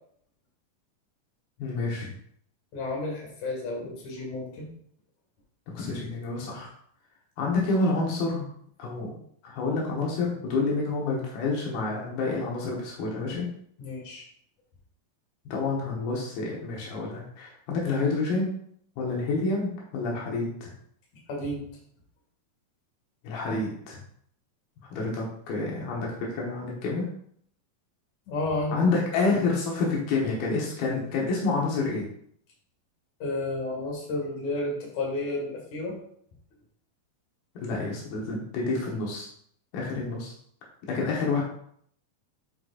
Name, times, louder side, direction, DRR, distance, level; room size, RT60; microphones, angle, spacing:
voice 1, 1.6-2.1 5.7-6.7 7.4-8.4 8.8-9.1 9.4-13.5 15.5-18.6 19.0-20.7 23.2-24.0 24.9-27.1 28.7-32.1 37.6-39.3 39.7-40.3 40.9-41.4, left 3 dB, 85° left, -3 dB, 3.3 m, -28 dB
voice 2, 2.7-4.7 13.8-14.2 21.3-21.6 28.3-28.8 33.2-36.0, left 2 dB, 55° left, -2 dB, 3.3 m, -31 dB
11.0 x 5.1 x 2.6 m, 0.65 s
omnidirectional pair, 4.2 m